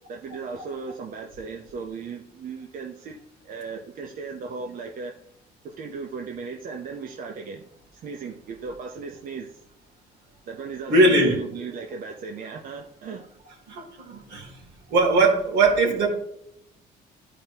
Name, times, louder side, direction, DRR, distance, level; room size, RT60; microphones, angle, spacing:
voice 1, 0.1-3.2 3.4-5.1 5.6-7.6 7.9-9.6 10.5-13.3, right 5 dB, 55° right, 2 dB, 0.9 m, -36 dB
voice 2, 10.9-11.4 13.7-14.6 14.9-16.1, right 2 dB, 75° right, -2 dB, 3.2 m, -20 dB
12.0 x 5.0 x 2.9 m, 0.76 s
cardioid pair, 110°, 17 cm